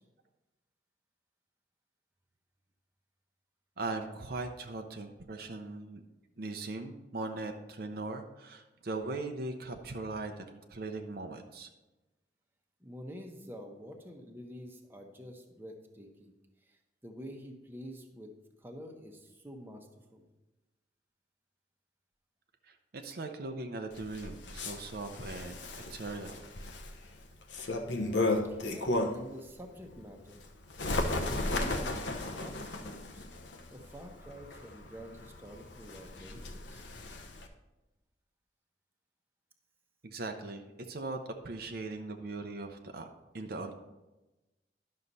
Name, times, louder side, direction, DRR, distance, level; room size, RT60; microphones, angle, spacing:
voice 1, 3.8-6.0 6.4-11.7 22.6-25.6 25.9-26.4 40.0-41.2 41.4-43.1 43.3-43.7, right 3 dB, 55° right, 4 dB, 0.7 m, -39 dB
voice 2, 12.8-16.3 16.6-18.3 18.6-20.2 28.4-30.4 31.2-33.3 33.7-36.9, equal, 10° right, 2 dB, 1.0 m, -48 dB
Bird, 23.9-29.3 29.8-37.5, left 2 dB, 85° left, 1.0 m, -35 dB
11.0 x 6.5 x 4.1 m, 1.1 s
head